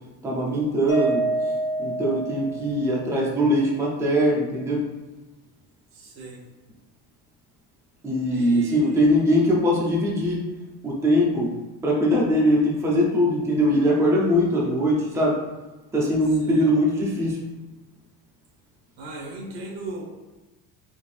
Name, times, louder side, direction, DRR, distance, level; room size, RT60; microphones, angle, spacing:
voice 1, 0.2-1.2 1.8-4.8 8.0-10.4 10.8-11.5 11.8-15.4 15.9-17.4, equal, 5° right, -3 dB, 0.5 m, -21 dB
Mallet percussion, 0.9-3.2, right 2 dB, 65° left, 1.1 m, -27 dB
voice 2, 2.4-2.8 5.9-6.4 8.3-9.2 16.4-16.7 19.0-20.0, right 2 dB, 80° right, -2 dB, 1.4 m, -38 dB
4.3 x 3.1 x 3.2 m, 1.1 s
cardioid pair, 165°, 39 cm